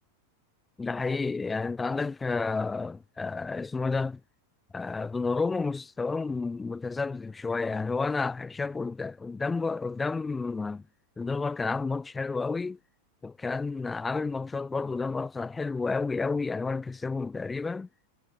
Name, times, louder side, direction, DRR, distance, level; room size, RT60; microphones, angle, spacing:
voice 1, 0.8-4.2 4.7-10.8 11.2-12.8 13.2-17.9, left 4 dB, 10° left, 0.8 m, -31 dB
figure-of-eight pair, 90°, 0 cm